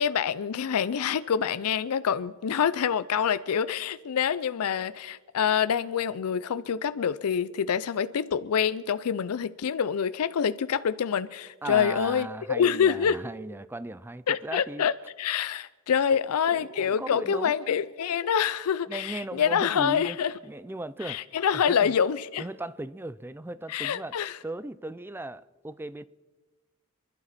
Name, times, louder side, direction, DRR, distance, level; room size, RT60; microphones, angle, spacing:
voice 1, 0.0-13.2 14.3-20.3 21.0-22.4 23.7-24.4, left 7 dB, 85° left, 0.4 m, -26 dB
voice 2, 11.6-14.9 16.1-16.2 16.5-17.7 18.9-20.2 20.4-21.2 21.5-21.9 22.4-24.2 24.4-26.0, right 1 dB, 10° right, 0.4 m, -37 dB
27.5 x 11.5 x 4.2 m
head